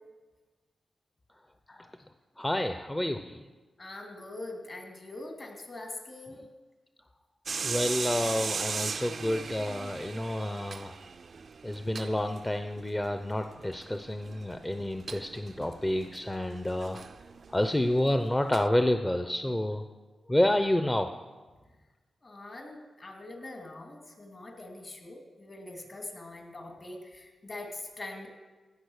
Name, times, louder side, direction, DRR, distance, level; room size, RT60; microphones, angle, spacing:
voice 1, 2.4-3.4 7.6-11.0 11.6-17.0 17.5-19.8 20.3-21.1, left 1 dB, 15° left, 7 dB, 0.6 m, -29 dB
voice 2, 3.8-6.4 22.2-28.3, left 2 dB, 45° left, 2 dB, 2.7 m, -43 dB
sound 1, 7.5-18.7, right 5 dB, 60° right, 0.4 m, -39 dB
16.0 x 6.4 x 6.5 m, 1.3 s
cardioid pair, 70°, 0 cm